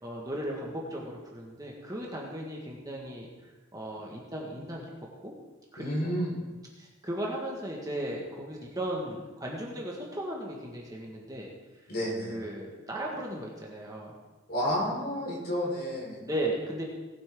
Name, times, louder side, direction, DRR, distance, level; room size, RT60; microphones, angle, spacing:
voice 1, 0.0-3.3 3.7-4.9 5.2-5.3 5.7-6.2 6.8-11.5 12.3-14.2 16.3-16.8, right 1 dB, 20° right, -2 dB, 1.7 m, -36 dB
voice 2, 5.8-6.3 11.9-12.4 14.5-16.2, equal, 50° left, -5 dB, 4.6 m, -30 dB
19.0 x 8.6 x 3.8 m, 1.2 s
head